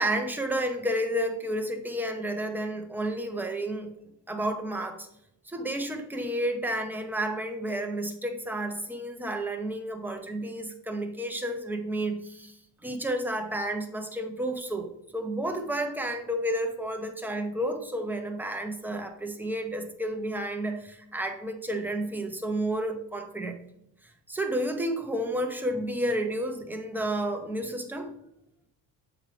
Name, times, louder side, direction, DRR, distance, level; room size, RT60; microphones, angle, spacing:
voice 1, 0.0-3.9 4.3-5.1 5.5-12.6 12.8-23.6 24.3-28.1, right 1 dB, 5° right, 4 dB, 0.7 m, -31 dB
7.1 x 5.0 x 3.3 m, 0.80 s
cardioid pair, 140°, 41 cm